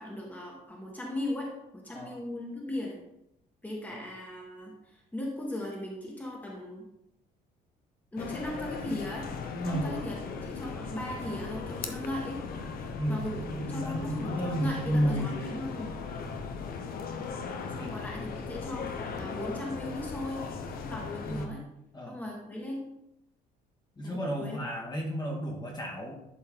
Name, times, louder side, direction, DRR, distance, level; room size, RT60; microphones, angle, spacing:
voice 1, 0.0-3.0 3.6-6.9 8.1-9.3 9.7-12.4 13.1-15.9 17.7-20.4 20.7-21.7 22.1-22.9 24.0-24.6, left 1 dB, 10° left, -2 dB, 1.9 m, -38 dB
sound 1, 8.2-21.5, left 5 dB, 60° left, 0.9 m, -38 dB
voice 2, 13.0-15.4 16.2-16.4 17.6-17.9 21.3-21.7 21.9-22.2 24.0-26.1, right 1 dB, 25° left, -2 dB, 2.0 m, -32 dB
11.5 x 4.4 x 3.8 m, 0.82 s
cardioid pair, 110°, 17 cm